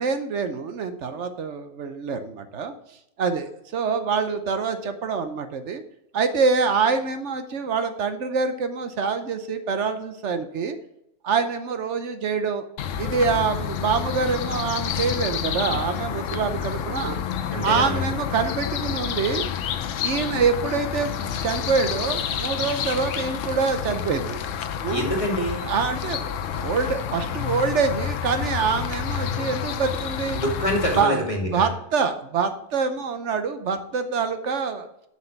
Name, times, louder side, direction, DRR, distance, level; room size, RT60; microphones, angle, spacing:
voice 1, 0.0-2.7 3.2-5.8 6.1-10.8 11.2-12.7 13.0-17.2 17.6-19.4 20.0-24.4 24.8-25.1 25.6-30.4 30.9-34.9, right 5 dB, 70° right, 9 dB, 1.1 m, -25 dB
sound 1, 12.8-31.0, left 8 dB, 90° left, 1.0 m, -29 dB
voice 2, 17.5-18.0 24.9-25.6 30.3-31.7, equal, 25° left, 1 dB, 2.1 m, -26 dB
7.5 x 6.0 x 5.8 m, 0.79 s
omnidirectional pair, 1.3 m